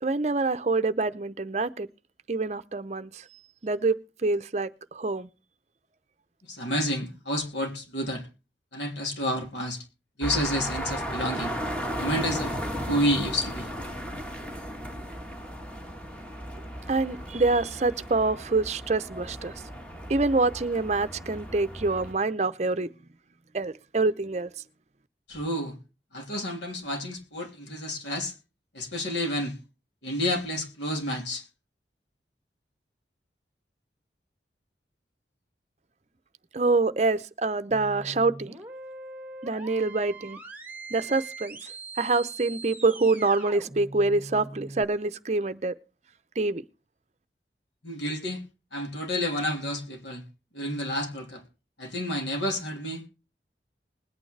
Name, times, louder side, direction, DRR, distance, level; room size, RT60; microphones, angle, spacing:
voice 1, 0.0-1.9 2.3-3.2 3.6-5.3 16.9-19.5 20.1-22.9 23.5-24.5 36.5-38.6 39.4-40.4 40.9-41.6 42.0-45.7 46.4-46.6, right 3 dB, 40° right, 0.6 m, -26 dB
voice 2, 6.4-8.3 8.7-9.8 10.2-11.5 12.0-12.6 12.9-13.7 25.3-25.8 26.1-28.3 28.7-29.6 30.0-31.4 47.8-48.4 48.7-50.2 50.5-51.4 51.8-53.0, equal, 85° left, 3.1 m, -30 dB
sound 1, 10.2-22.1, equal, 5° left, 1.4 m, -35 dB
sound 2, 37.7-44.8, right 3 dB, 10° right, 1.4 m, -42 dB
20.5 x 8.9 x 3.3 m
head